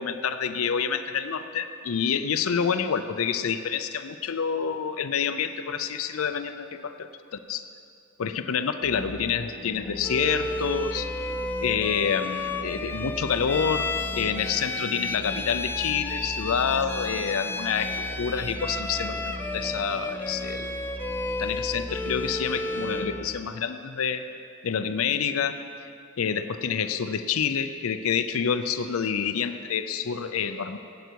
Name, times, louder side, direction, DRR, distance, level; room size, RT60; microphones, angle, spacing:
voice 1, 0.0-7.6 8.2-11.1 11.6-13.9 14.1-20.8 21.4-24.2 24.6-25.6 26.2-30.8, left 7 dB, 90° left, 10 dB, 0.5 m, -28 dB
sound 1, 8.8-23.3, equal, 25° left, 2.5 m, -39 dB
Bowed string instrument, 10.0-23.2, left 2 dB, 10° left, 0.5 m, -32 dB
17.0 x 8.1 x 4.6 m, 2.5 s
head